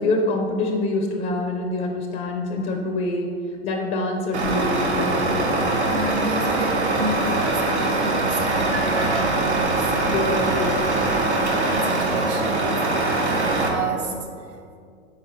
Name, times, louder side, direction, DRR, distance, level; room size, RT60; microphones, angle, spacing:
voice 1, 0.0-3.3 3.6-5.6 10.1-11.3, left 2 dB, 25° left, 2 dB, 0.5 m, -26 dB
Truck, 4.3-13.7, right 2 dB, 80° right, 1.0 m, -22 dB
voice 2, 5.9-10.0 11.1-14.6, right 3 dB, 40° right, 3 dB, 0.4 m, -31 dB
5.0 x 4.4 x 4.3 m, 2.3 s
figure-of-eight pair, 95°, 33 cm